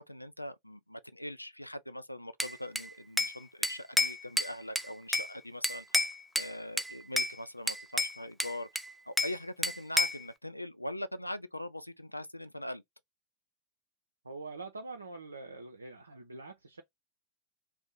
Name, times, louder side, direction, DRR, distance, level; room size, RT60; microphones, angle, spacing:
voice 1, 0.0-6.0 6.4-8.7 9.1-12.8, left 1 dB, 90° left, 0.3 m, -41 dB
Bell / Glass, 2.4-3.4 3.6-5.3 5.6-6.5 6.8-7.3 7.7-9.4 9.6-10.2, left 1 dB, ahead, 0.3 m, -30 dB
voice 2, 14.2-16.8, right 3 dB, 80° right, 0.4 m, -44 dB
2.6 x 2.0 x 3.8 m
figure-of-eight pair, 90°, 0 cm